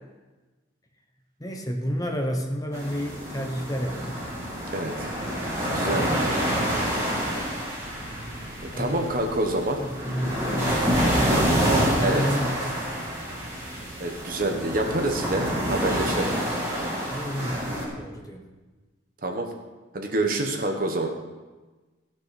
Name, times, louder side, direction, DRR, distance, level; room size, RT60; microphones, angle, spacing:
voice 1, 1.4-4.3 8.7-9.2 9.8-12.8 17.1-18.5, equal, 20° left, 3 dB, 1.1 m, -31 dB
sound 1, 2.7-17.8, equal, 15° right, 2.9 m, -27 dB
voice 2, 4.7-5.1 5.7-6.3 8.8-9.8 12.0-12.2 14.0-16.3 19.2-19.5 19.9-21.1, right 1 dB, 45° right, 3 dB, 1.3 m, -27 dB
16.0 x 6.3 x 6.0 m, 1.2 s
head